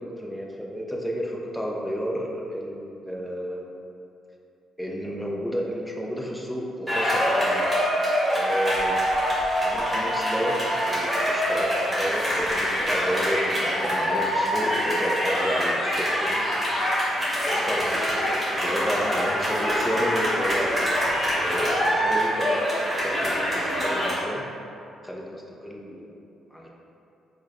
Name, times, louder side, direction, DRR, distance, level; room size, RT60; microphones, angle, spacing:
voice 1, 0.0-3.7 4.8-7.8 8.3-9.0 9.6-16.4 16.7-16.8 17.5-20.9 21.4-22.5 23.0-24.4 25.0-26.1 26.5-26.7, equal, 5° left, -2 dB, 0.4 m, -31 dB
sound 1, 6.9-24.1, equal, 10° right, 1.5 m, -25 dB
4.3 x 2.1 x 2.4 m, 2.7 s
cardioid pair, 90°, 0 cm